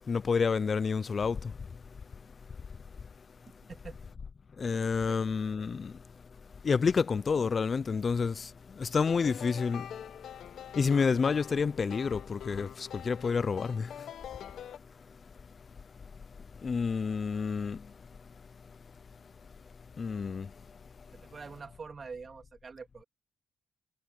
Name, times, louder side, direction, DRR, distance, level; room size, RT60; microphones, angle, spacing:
voice 1, 0.1-1.5 4.6-5.9 6.6-9.9 10.8-13.9 16.6-17.8 20.0-20.5, left 5 dB, 40° left, 0.4 m, -29 dB
voice 2, 3.7-4.1 4.7-5.4 21.1-23.0, right 5 dB, 40° right, 3.1 m, -46 dB
sound 1, 9.0-14.8, left 10 dB, 70° left, 1.1 m, -45 dB
cardioid pair, 90°, 0 cm